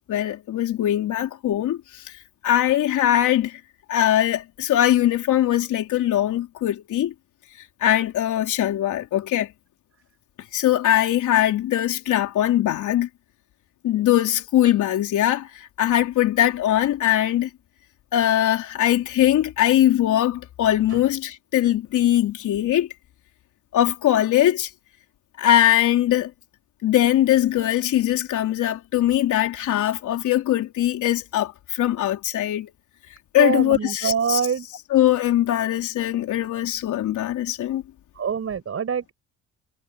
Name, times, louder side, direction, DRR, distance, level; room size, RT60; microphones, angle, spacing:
voice 1, 0.1-2.0 2.4-3.6 3.9-7.1 7.8-9.5 10.5-13.1 13.8-17.5 18.1-22.9 23.7-24.7 25.4-26.3 26.8-32.7 33.3-34.5 34.9-37.8, left 12 dB, 80° left, 3.6 m, -21 dB
voice 2, 33.4-34.7 38.2-39.1, right 7 dB, 50° right, 6.1 m, -24 dB
cardioid pair, 90°, 30 cm